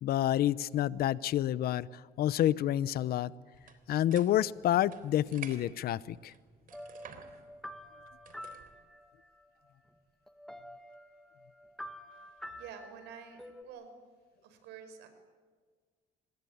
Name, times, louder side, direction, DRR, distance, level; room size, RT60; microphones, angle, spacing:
voice 1, 0.0-3.3 3.9-6.3, left 12 dB, 65° left, 19 dB, 0.9 m, -29 dB
sound 1, 3.5-8.7, right 7 dB, 55° right, 3.5 m, -52 dB
sound 2, 6.7-9.5 9.9-10.0 10.3-13.6, equal, ahead, 2.0 m, -48 dB
voice 2, 12.2-13.9 14.4-15.1, right 7 dB, 90° right, 8 dB, 5.4 m, -49 dB
26.5 x 21.5 x 9.5 m, 1.5 s
cardioid pair, 110°, 17 cm